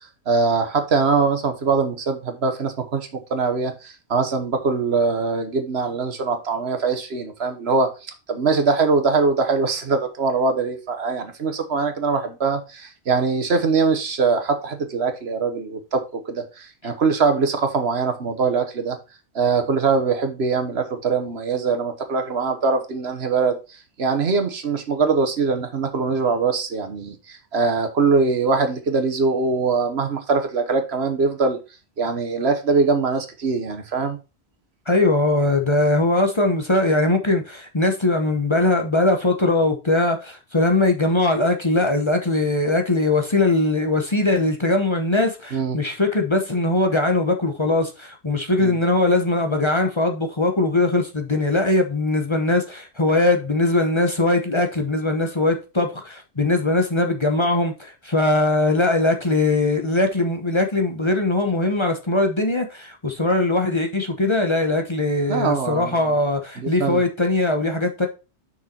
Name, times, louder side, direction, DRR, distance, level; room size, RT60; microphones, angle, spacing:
voice 1, 0.3-7.9 8.3-19.0 19.3-23.6 24.0-31.6 32.0-34.2 45.5-45.8 48.6-48.8 65.3-66.0 66.6-67.0, right 4 dB, 70° right, 1.4 m, -22 dB
voice 2, 34.9-68.1, left 2 dB, 25° left, 1.0 m, -21 dB
6.5 x 6.0 x 4.3 m
omnidirectional pair, 1.1 m